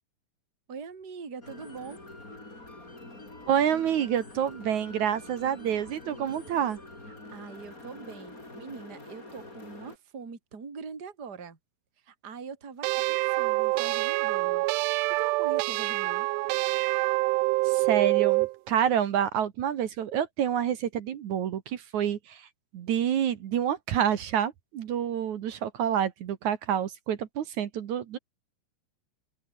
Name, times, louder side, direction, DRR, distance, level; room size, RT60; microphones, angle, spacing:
voice 1, 0.7-2.0 7.1-11.6 12.0-16.3, right 5 dB, 25° right, 3.5 m, -43 dB
sound 1, 1.4-10.0, left 2 dB, 20° left, 6.5 m, -46 dB
voice 2, 3.5-6.8 17.6-22.5 22.7-28.2, right 9 dB, 60° right, 2.2 m, -28 dB
sound 2, 12.8-18.5, right 22 dB, 85° right, 2.7 m, -26 dB
open air
omnidirectional pair, 4.9 m